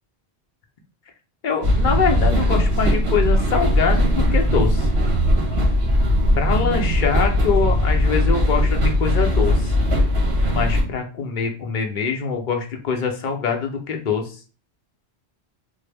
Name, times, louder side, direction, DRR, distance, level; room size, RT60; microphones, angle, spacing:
voice 1, 1.4-4.9 6.3-9.7 10.5-14.4, left 6 dB, 55° left, 3 dB, 0.7 m, -24 dB
sound 1, 1.6-10.8, left 1 dB, 75° right, 1.4 m, -19 dB
3.5 x 2.1 x 3.3 m, 0.37 s
omnidirectional pair, 1.1 m